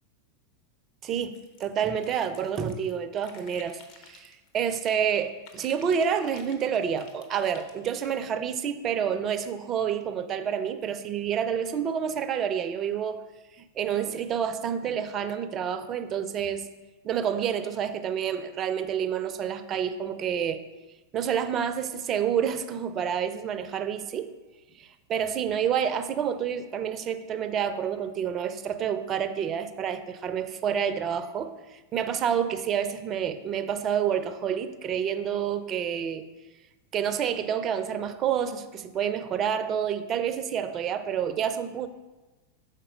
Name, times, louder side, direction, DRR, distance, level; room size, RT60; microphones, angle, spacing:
voice 1, 1.0-13.2 13.6-16.7 17.0-20.6 21.1-24.3 24.8-36.2 36.9-41.9, right 8 dB, 30° right, 10 dB, 0.4 m, -29 dB
sound 1, 1.3-2.9 3.2-5.2 5.5-8.2, left 4 dB, 45° left, 0.9 m, -52 dB
5.8 x 4.1 x 5.0 m, 1.1 s
figure-of-eight pair, 90°, 0 cm